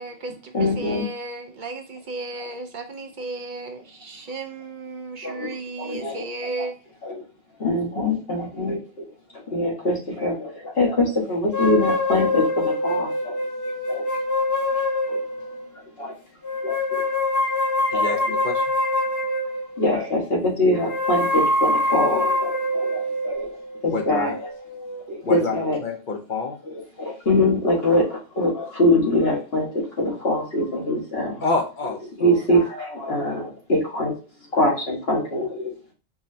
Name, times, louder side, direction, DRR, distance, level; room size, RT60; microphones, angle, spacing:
voice 1, 0.0-6.7, right 2 dB, 55° right, 5 dB, 0.7 m, -34 dB
voice 2, 0.5-1.0 5.2-6.7 7.0-7.1 7.6-9.1 9.3-13.4 13.9-14.0 15.1-15.2 15.8-16.1 16.6-17.0 17.9-18.2 19.8-23.5 23.8-24.5 25.1-25.8 26.7-31.4 32.2-34.1 34.5-35.7, left 1 dB, 70° left, -2 dB, 1.8 m, -23 dB
sound 1, 11.5-15.7 16.4-19.9 20.7-25.1, left 1 dB, 20° left, 0.6 m, -25 dB
voice 3, 17.9-18.6 23.9-24.4 25.2-26.6 31.4-32.3, left 3 dB, 55° left, 3 dB, 0.8 m, -27 dB
4.7 x 3.1 x 2.7 m, 0.35 s
omnidirectional pair, 1.0 m